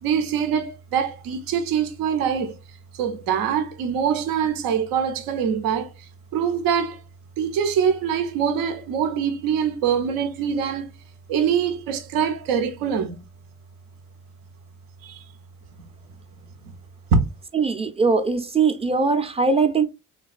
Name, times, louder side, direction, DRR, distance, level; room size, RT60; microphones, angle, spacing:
voice 1, 0.0-2.6 2.9-6.1 6.3-7.0 7.4-10.9 11.3-13.2 15.0-15.2 17.1-17.2, right 7 dB, 85° right, 0.5 m, -24 dB
voice 2, 17.5-19.8, right 4 dB, 20° right, 0.4 m, -21 dB
3.2 x 2.2 x 2.3 m
supercardioid pair, 70°, 34 cm